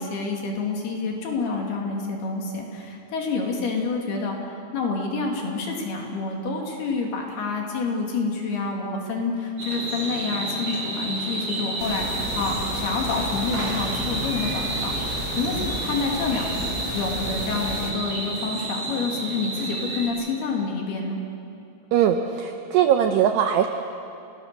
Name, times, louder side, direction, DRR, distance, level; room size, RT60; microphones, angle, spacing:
voice 1, 0.0-21.2, left 4 dB, 55° left, 0 dB, 4.1 m, -28 dB
sound 1, 9.6-20.1, right 2 dB, 40° right, 5.8 m, -30 dB
sound 2, 11.8-17.9, left 1 dB, 40° left, 3.1 m, -33 dB
voice 2, 21.9-23.7, right 9 dB, 85° right, 5 dB, 2.4 m, -20 dB
30.0 x 18.5 x 6.8 m, 2.6 s
omnidirectional pair, 5.9 m